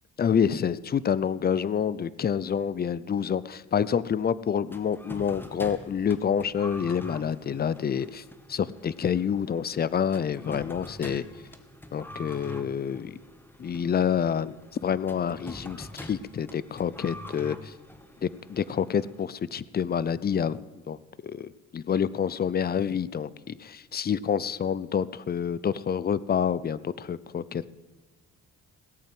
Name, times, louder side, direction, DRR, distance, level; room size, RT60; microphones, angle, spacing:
voice 1, 0.2-8.2 8.5-11.2 11.9-13.2 13.6-14.6 14.8-17.7 18.2-21.0 21.2-27.7, left 7 dB, 30° left, 19 dB, 0.5 m, -28 dB
sound 1, 4.7-19.4, left 1 dB, 5° left, 1.3 m, -45 dB
17.0 x 8.9 x 7.8 m, 1.3 s
cardioid pair, 90°, 30 cm